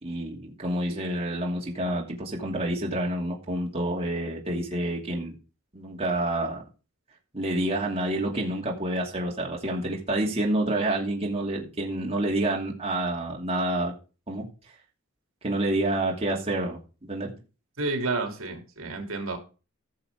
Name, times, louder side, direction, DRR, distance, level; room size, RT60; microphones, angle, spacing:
voice 1, 0.0-5.3 5.7-6.6 7.3-13.9 14.3-14.4 15.4-17.3, right 1 dB, 30° right, -2 dB, 2.7 m, -28 dB
voice 2, 17.8-19.4, right 3 dB, 70° right, 4 dB, 2.9 m, -30 dB
16.5 x 7.0 x 3.7 m, 0.33 s
head